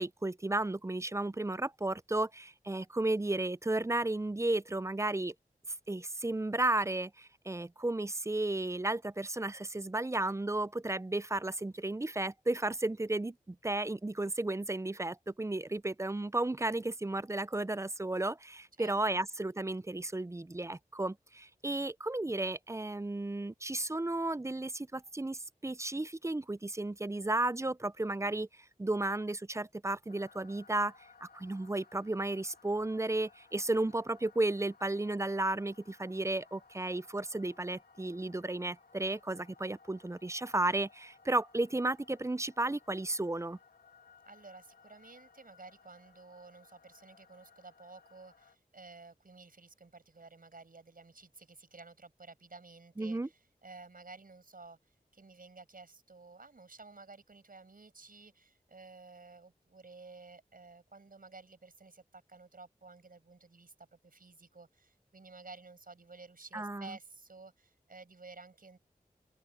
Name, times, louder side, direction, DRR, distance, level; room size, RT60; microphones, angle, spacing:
voice 1, 0.0-5.3 5.9-28.5 28.8-30.9 31.2-43.6 53.0-53.3 66.5-67.0, right 2 dB, 20° right, 0.4 m, -33 dB
voice 2, 18.8-19.2 44.2-54.8 55.1-68.8, right 3 dB, 65° right, 6.4 m, -53 dB
sound 1, 30.1-48.6, left 5 dB, 85° left, 2.4 m, -62 dB
open air
wide cardioid pair, 55°, 16 cm